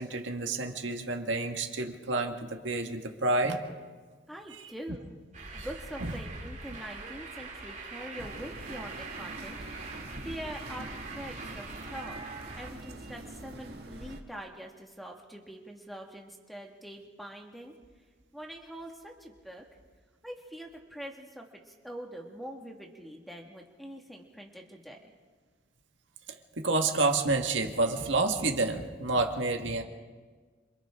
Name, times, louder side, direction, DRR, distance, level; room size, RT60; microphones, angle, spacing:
voice 1, 0.0-3.6 4.5-4.7 6.0-6.1 26.6-29.8, right 3 dB, 80° right, 4 dB, 1.8 m, -29 dB
voice 2, 4.3-5.1 5.5-9.6 10.2-12.2 12.6-17.7 18.3-19.6 20.2-25.1, equal, ahead, 1 dB, 1.9 m, -44 dB
Truck, 5.3-12.7, right 3 dB, 40° right, 2.9 m, -43 dB
sound 1, 8.2-14.2, right 1 dB, 55° right, 1.8 m, -45 dB
27.5 x 27.0 x 3.8 m, 1.4 s
head